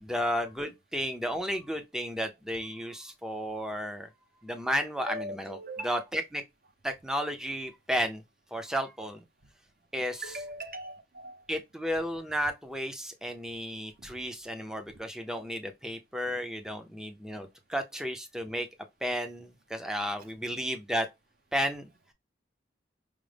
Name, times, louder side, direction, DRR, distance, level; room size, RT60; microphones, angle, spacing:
voice 1, 0.0-4.1 4.4-5.6 5.8-6.4 6.8-8.2 8.5-9.2 9.9-10.3 11.5-18.7 19.0-21.1 21.5-21.9, equal, 5° right, 0.5 m, -33 dB
voice 2, 5.1-6.0 10.2-11.4 14.0-14.1, right 1 dB, 50° right, 0.7 m, -40 dB
5.0 x 2.0 x 3.2 m
head